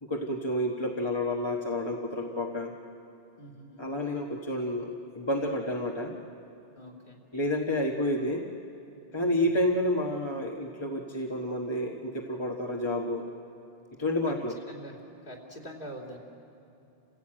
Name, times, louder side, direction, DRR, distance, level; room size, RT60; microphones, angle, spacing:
voice 1, 0.1-2.7 3.8-6.2 7.3-8.5 9.1-13.3 14.0-14.5, left 1 dB, 25° left, 0 dB, 1.4 m, -30 dB
voice 2, 3.4-3.9 6.8-7.2 9.3-9.6 14.7-16.2, right 1 dB, 50° left, -1 dB, 3.2 m, -45 dB
28.5 x 16.0 x 8.8 m, 2.8 s
omnidirectional pair, 1.1 m